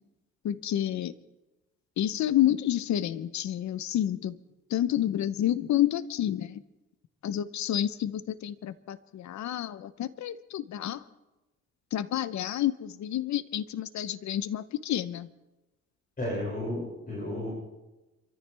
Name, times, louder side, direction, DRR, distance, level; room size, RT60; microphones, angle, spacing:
voice 1, 0.4-1.1 2.0-4.4 4.7-6.6 7.2-11.0 11.9-15.3, left 12 dB, 65° left, 15 dB, 0.8 m, -29 dB
voice 2, 16.2-17.5, left 1 dB, 30° left, -4 dB, 6.2 m, -33 dB
27.0 x 14.0 x 3.4 m, 1.0 s
cardioid pair, 90°, 30 cm